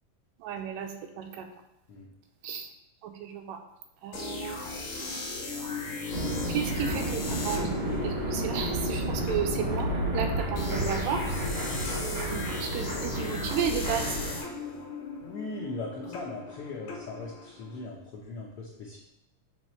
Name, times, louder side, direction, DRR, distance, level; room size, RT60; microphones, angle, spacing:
voice 1, 0.4-1.5 2.4-2.7 3.0-3.6 4.0-4.6 6.5-11.6 12.0-14.2, right 7 dB, 85° right, 4 dB, 2.2 m, -33 dB
sound 1, 4.1-17.8, left 3 dB, 55° left, 1.5 m, -38 dB
sound 2, 6.1-14.4, right 1 dB, 40° right, 0.9 m, -31 dB
voice 2, 15.2-19.0, left 2 dB, 80° left, -4 dB, 1.3 m, -39 dB
7.1 x 3.1 x 5.7 m, 0.85 s
omnidirectional pair, 3.9 m